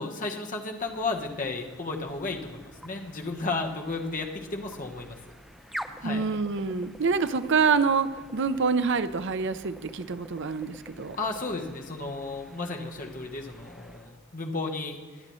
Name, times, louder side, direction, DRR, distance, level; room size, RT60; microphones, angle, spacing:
voice 1, 0.0-5.2 6.0-6.2 11.2-15.0, left 3 dB, 40° left, 2 dB, 1.2 m, -33 dB
sound 1, 0.7-14.2, equal, ahead, 0.5 m, -47 dB
voice 2, 6.0-11.2, right 5 dB, 55° right, 11 dB, 0.6 m, -26 dB
22.5 x 8.6 x 3.1 m, 1.4 s
head